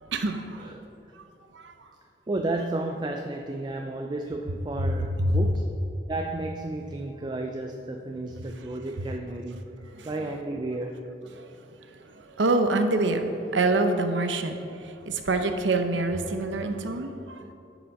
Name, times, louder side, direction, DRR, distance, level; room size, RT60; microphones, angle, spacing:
voice 1, 0.0-0.7 1.2-1.3 1.5-1.7 4.8-5.4 9.9-10.1 11.3-17.5, right 2 dB, 85° right, 7 dB, 0.7 m, -27 dB
voice 2, 0.6-0.9 2.3-5.6 6.1-11.1, right 2 dB, 25° right, 4 dB, 0.4 m, -33 dB
10.0 x 5.0 x 5.3 m, 2.7 s
head